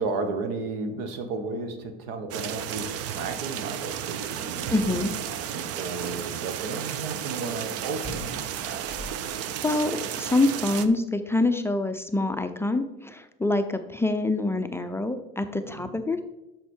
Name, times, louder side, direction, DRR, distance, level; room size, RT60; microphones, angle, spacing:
voice 1, 0.0-4.9 5.2-8.8 15.6-15.9, right 3 dB, 85° right, 7 dB, 1.4 m, -34 dB
sound 1, 2.3-10.9, right 9 dB, 55° right, 0.7 m, -33 dB
sound 2, 4.5-5.3 5.6-5.9 8.0-9.4, equal, 35° right, 2.6 m, -42 dB
voice 2, 4.7-5.1 9.6-16.2, left 2 dB, 10° left, 8 dB, 0.4 m, -26 dB
8.1 x 6.4 x 4.4 m, 0.97 s
supercardioid pair, 115°, 30 cm